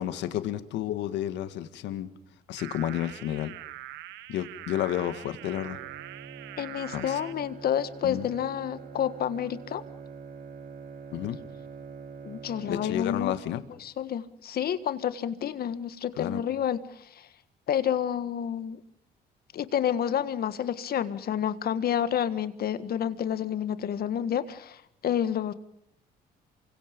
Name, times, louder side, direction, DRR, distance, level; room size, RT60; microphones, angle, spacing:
voice 1, 0.0-2.1 2.5-3.6 4.3-5.8 6.9-7.2 8.0-8.3 11.1-11.4 12.7-13.6 16.2-16.4, left 12 dB, 80° left, 11 dB, 1.8 m, -31 dB
sound 1, 2.6-7.3, right 15 dB, 85° right, 1.2 m, -43 dB
Bowed string instrument, 5.3-13.7, right 6 dB, 60° right, 3.2 m, -45 dB
voice 2, 6.6-9.8 12.2-13.3 13.8-17.3 17.7-18.8 19.5-25.5, left 9 dB, 60° left, 13 dB, 1.7 m, -29 dB
28.0 x 25.0 x 5.3 m, 0.73 s
cardioid pair, 85°, 18 cm